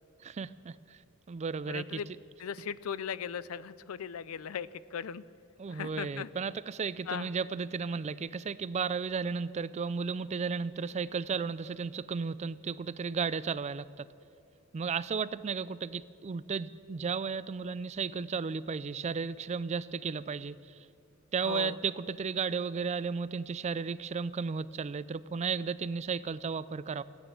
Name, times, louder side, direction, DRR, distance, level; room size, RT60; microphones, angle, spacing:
voice 1, 0.2-0.7 1.3-2.0 5.6-14.1 14.7-20.6 21.3-27.0, right 5 dB, 35° right, 17 dB, 0.3 m, -34 dB
voice 2, 1.7-2.1 2.4-5.2 5.7-6.3 7.1-7.3 21.4-21.8, left 7 dB, 90° left, 18 dB, 0.4 m, -38 dB
15.5 x 9.3 x 8.6 m, 2.4 s
head